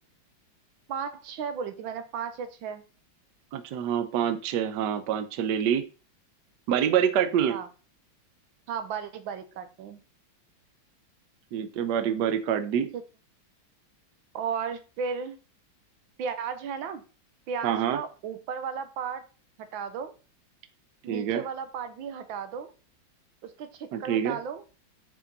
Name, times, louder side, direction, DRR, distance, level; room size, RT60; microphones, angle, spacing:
voice 1, 0.9-2.8 7.5-7.7 8.7-10.0 12.9-13.0 14.3-15.4 16.2-17.0 17.5-19.2 19.6-20.1 21.0-22.7 23.4-24.6, right 6 dB, 90° right, 10 dB, 1.6 m, -34 dB
voice 2, 3.5-5.8 6.7-7.6 11.5-12.9 17.6-18.0 21.1-21.4 23.9-24.4, right 9 dB, 70° right, 9 dB, 1.3 m, -26 dB
6.7 x 5.2 x 4.0 m, 0.34 s
omnidirectional pair, 2.1 m